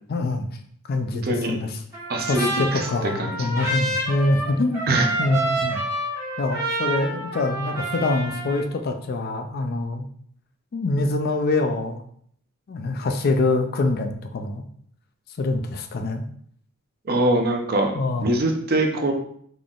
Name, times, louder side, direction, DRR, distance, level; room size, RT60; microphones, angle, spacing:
voice 1, 0.1-0.5 0.9-1.7 2.3-4.9 5.2-5.8 6.4-10.1 10.7-12.0 12.7-14.6 15.4-16.2 18.0-18.3, left 2 dB, 45° left, 6 dB, 0.4 m, -24 dB
voice 2, 1.2-1.6 2.1-3.7 4.9-5.1 17.0-17.9 18.2-19.1, right 1 dB, 45° right, 3 dB, 0.6 m, -23 dB
Trumpet, 1.9-8.7, right 1 dB, 15° right, 1.5 m, -28 dB
3.8 x 3.5 x 2.4 m, 0.63 s
head